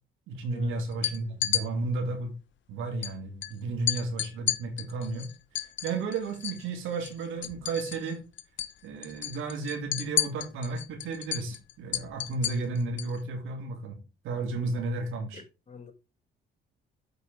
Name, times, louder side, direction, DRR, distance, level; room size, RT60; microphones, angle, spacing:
voice 1, 0.3-2.3 2.7-5.3 5.6-8.3 8.8-15.4, right 3 dB, 90° right, 2.4 m, -33 dB
sound 1, 0.9-1.6 3.0-3.1 3.4-3.5 3.9-6.6 6.9-8.1 8.4-8.7 9.0-13.2, left 11 dB, 70° left, 0.8 m, -31 dB
voice 2, 15.3-15.9, left 4 dB, 35° left, 1.6 m, -48 dB
7.9 x 5.0 x 4.7 m
cardioid pair, 90°, 20 cm